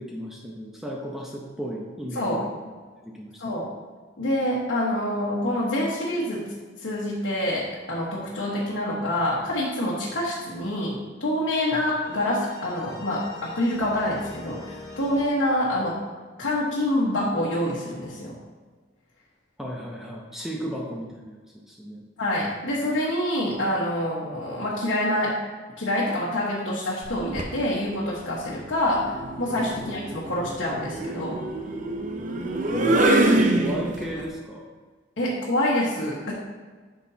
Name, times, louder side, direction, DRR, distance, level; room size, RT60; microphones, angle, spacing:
voice 1, 0.0-2.5 3.0-3.6 11.7-11.8 19.6-21.4 21.7-22.0 29.7-29.9 32.7-34.7, equal, ahead, -2 dB, 0.7 m, -34 dB
voice 2, 2.1-2.4 3.4-3.7 4.2-16.0 16.4-18.4 22.2-25.4 25.8-31.4 35.2-36.3, left 1 dB, 80° left, -6 dB, 1.3 m, -26 dB
sound 1, 12.0-15.2, left 2 dB, 15° left, 1.8 m, -43 dB
sound 2, 27.0-27.6 28.9-34.2, right 2 dB, 40° right, 0.7 m, -25 dB
9.6 x 6.1 x 2.8 m, 1.5 s
head